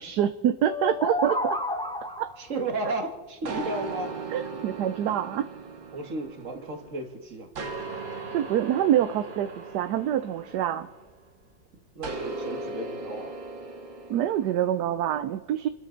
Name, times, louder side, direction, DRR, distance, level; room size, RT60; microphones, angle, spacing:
voice 1, 0.0-1.6 2.2-2.3 4.3-5.5 8.3-10.9 14.1-15.7, right 11 dB, 70° right, 10 dB, 1.1 m, -26 dB
sound 1, 0.6-2.5, left 1 dB, 5° left, 0.8 m, -30 dB
voice 2, 2.4-4.2 5.9-7.5 12.0-13.3, right 2 dB, 45° right, 4 dB, 2.0 m, -34 dB
sound 2, 3.5-7.0 7.6-11.3 12.0-14.7, right 3 dB, 90° right, 2.4 m, -38 dB
28.0 x 13.0 x 3.9 m, 1.2 s
omnidirectional pair, 2.0 m